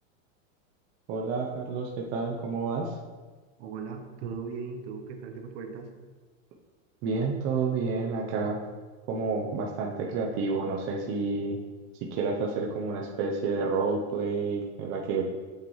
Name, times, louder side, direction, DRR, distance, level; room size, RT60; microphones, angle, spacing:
voice 1, 1.1-2.9 7.0-8.6 9.1-11.6 12.1-15.3, right 4 dB, 30° right, -2 dB, 0.7 m, -29 dB
voice 2, 3.6-5.9, right 5 dB, 60° right, 4 dB, 1.2 m, -38 dB
7.9 x 6.6 x 3.2 m, 1.3 s
supercardioid pair, 155°, 40 cm